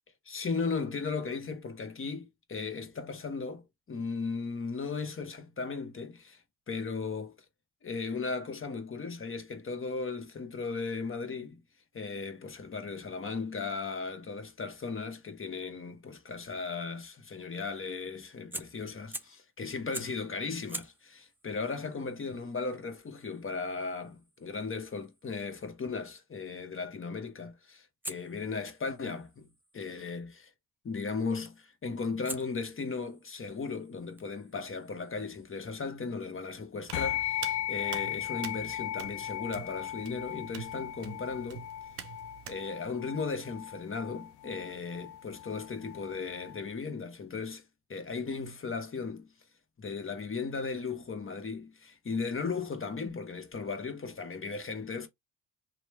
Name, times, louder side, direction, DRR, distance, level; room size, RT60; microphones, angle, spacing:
voice 1, 0.3-6.4 6.7-7.3 7.8-11.6 11.9-29.5 29.7-30.5 30.8-41.7 42.5-47.6 47.9-49.3 49.8-55.1, left 4 dB, 30° left, 1.0 m, -36 dB
Fire, 18.5-19.5 19.9-20.3 20.7-25.6 28.0-30.1 31.4-31.7 32.3-35.7, right 1 dB, 5° right, 0.4 m, -48 dB
Hands, 36.8-42.6, right 9 dB, 85° right, 0.6 m, -46 dB
sound 1, 36.9-46.6, left 12 dB, 80° left, 0.5 m, -37 dB
3.0 x 2.2 x 3.2 m
supercardioid pair, 60°, 39 cm